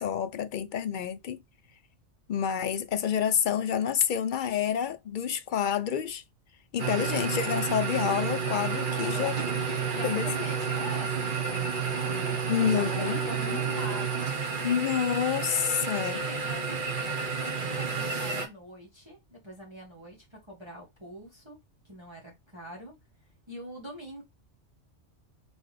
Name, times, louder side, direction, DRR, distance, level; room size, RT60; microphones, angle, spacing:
voice 1, 0.0-1.4 2.3-6.2 6.7-9.4 10.0-10.3 12.5-13.2 13.5-13.6 14.6-16.2, left 8 dB, 60° left, 0.5 m, -28 dB
sound 1, 6.8-18.5, right 5 dB, 45° right, 1.0 m, -30 dB
voice 2, 9.5-14.4 15.8-21.6 21.8-22.9 23.5-24.2, equal, 20° right, 1.6 m, -44 dB
4.0 x 3.4 x 3.2 m
omnidirectional pair, 1.3 m